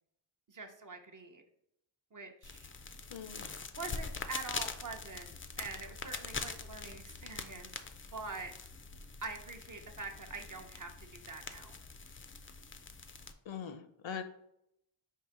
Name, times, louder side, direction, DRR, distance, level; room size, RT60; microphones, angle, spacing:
voice 1, 0.5-1.4 2.1-2.7 3.7-7.7 8.1-8.5 9.2-11.7, right 4 dB, 40° right, 4 dB, 0.7 m, -45 dB
sound 1, 2.4-13.3, left 4 dB, 30° left, 0.3 m, -44 dB
voice 2, 3.1-3.5 13.5-14.2, left 7 dB, 70° left, 9 dB, 0.6 m, -42 dB
4.7 x 2.8 x 3.6 m, 0.77 s
wide cardioid pair, 75°, 48 cm